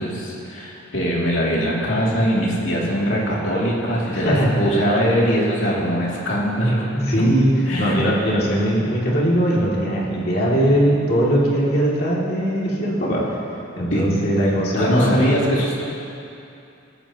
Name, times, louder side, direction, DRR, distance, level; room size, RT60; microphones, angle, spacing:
voice 1, 0.0-7.2 7.7-8.0 13.9-14.2 14.7-15.8, equal, 70° left, -5 dB, 2.7 m, -21 dB
voice 2, 4.1-4.5 7.0-7.5 7.8-13.3 13.8-15.1, equal, 50° left, -5 dB, 2.7 m, -20 dB
17.5 x 14.0 x 3.0 m, 2.7 s
head